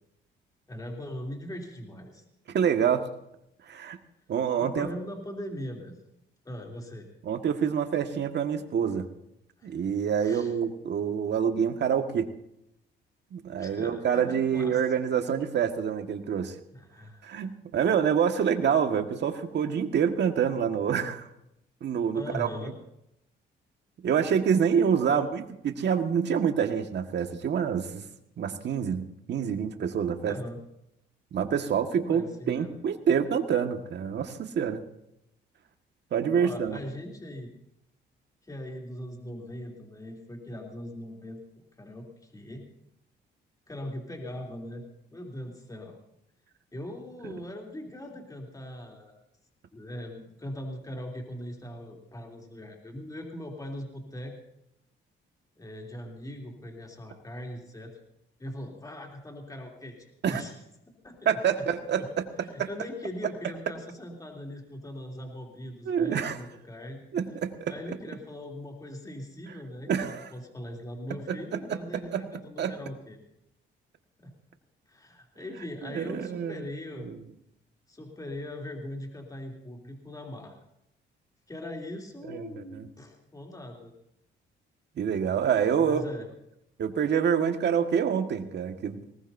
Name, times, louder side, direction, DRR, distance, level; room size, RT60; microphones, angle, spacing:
voice 1, 0.7-2.2 4.6-6.0 6.4-7.1 9.6-9.8 10.2-10.5 13.6-14.8 16.7-17.5 22.1-22.7 25.1-25.3 30.2-30.6 32.0-32.8 36.3-37.5 38.4-41.4 41.8-42.6 43.7-44.8 45.1-46.0 46.7-49.1 49.7-54.3 55.6-58.0 58.4-60.5 61.0-61.2 61.6-61.7 62.0-62.1 62.4-67.0 67.7-73.2 74.2-74.3 74.9-77.1 77.9-80.6 81.5-83.9 85.8-86.3, left 1 dB, 15° left, 0 dB, 3.2 m, -40 dB
voice 2, 2.5-3.1 3.7-4.0 4.3-4.9 7.2-9.1 9.6-12.3 13.3-16.6 17.2-21.3 21.8-22.5 24.0-28.0 28.4-30.3 31.3-34.8 36.1-36.8 60.2-60.4 61.3-62.0 62.6-62.7 65.9-66.4 67.1-67.7 69.9-70.3 71.3-71.8 72.1-72.2 72.6-72.7 75.8-76.6 77.1-77.2 82.3-82.9 85.0-86.0 86.8-89.1, right 7 dB, 60° right, 5 dB, 1.8 m, -27 dB
20.5 x 18.5 x 2.7 m, 0.80 s
cardioid pair, 90°, 20 cm